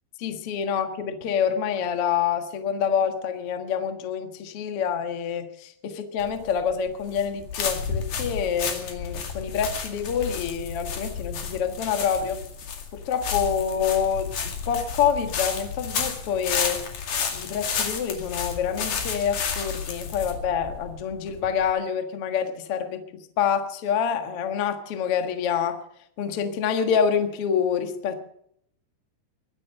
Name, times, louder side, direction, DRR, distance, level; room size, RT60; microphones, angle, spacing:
voice 1, 0.2-12.4 12.9-16.8 17.3-23.1 23.4-25.8 26.2-28.2, left 7 dB, 80° left, 6 dB, 1.3 m, -27 dB
sound 1, 6.2-21.7, left 6 dB, 50° left, 3.3 m, -31 dB
22.5 x 9.4 x 6.7 m, 0.69 s
omnidirectional pair, 5.3 m